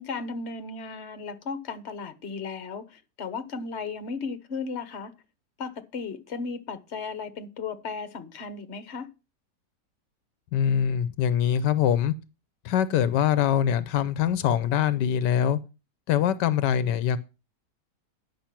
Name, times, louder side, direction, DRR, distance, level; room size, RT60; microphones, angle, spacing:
voice 1, 0.0-5.1 5.6-9.1, left 4 dB, 45° left, 1.4 m, -35 dB
voice 2, 10.5-12.1 12.6-15.6 16.1-17.2, left 9 dB, 85° left, 1.3 m, -23 dB
10.5 x 6.0 x 5.8 m
omnidirectional pair, 1.8 m